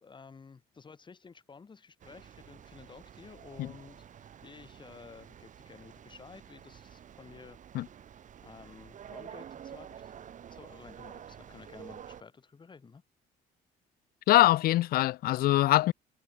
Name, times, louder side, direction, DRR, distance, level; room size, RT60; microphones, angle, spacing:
voice 1, 0.0-7.6 8.4-13.0, left 5 dB, 25° left, 3.5 m, -52 dB
sound 1, 2.0-12.2, right 9 dB, 50° right, 3.1 m, -49 dB
voice 2, 14.3-15.9, left 16 dB, 65° left, 0.5 m, -23 dB
cardioid pair, 110°, 17 cm